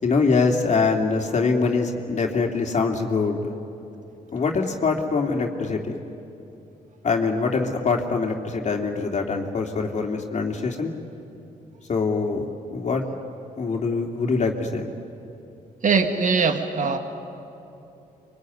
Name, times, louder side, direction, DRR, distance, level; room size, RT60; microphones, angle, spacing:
voice 1, 0.0-3.5 4.3-6.0 7.0-10.9 11.9-12.4 12.7-13.0 13.6-14.9, left 4 dB, 50° left, 2 dB, 2.9 m, -23 dB
voice 2, 15.8-17.0, right 5 dB, 55° right, 6 dB, 2.2 m, -21 dB
26.0 x 24.0 x 9.6 m, 2.9 s
cardioid pair, 70°, 16 cm